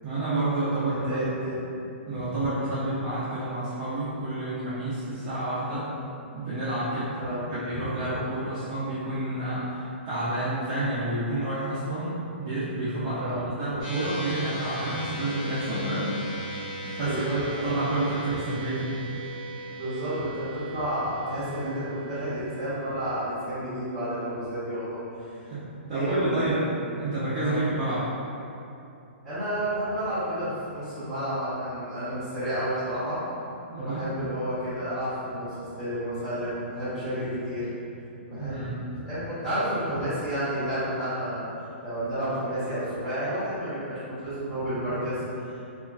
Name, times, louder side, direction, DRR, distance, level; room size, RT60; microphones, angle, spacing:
voice 1, 0.0-1.2 2.1-5.9 6.3-16.1 16.8-19.0 25.5-25.6 25.9-26.6 26.9-28.0 33.7-34.1 38.2-38.8, right 2 dB, 20° right, -13 dB, 0.4 m, -29 dB
voice 2, 0.9-1.8 2.4-2.5 7.2-7.4 7.7-7.8 13.2-13.4 17.0-17.8 19.7-25.4 25.9-26.7 27.4-27.6 29.2-33.2 33.8-37.7 38.3-38.7 39.0-41.5 41.8-45.7, equal, ahead, -15 dB, 0.8 m, -31 dB
sound 1, 13.8-26.3, right 1 dB, 35° left, 1.3 m, -39 dB
2.9 x 2.4 x 2.3 m, 2.7 s
hypercardioid pair, 180°, 6 cm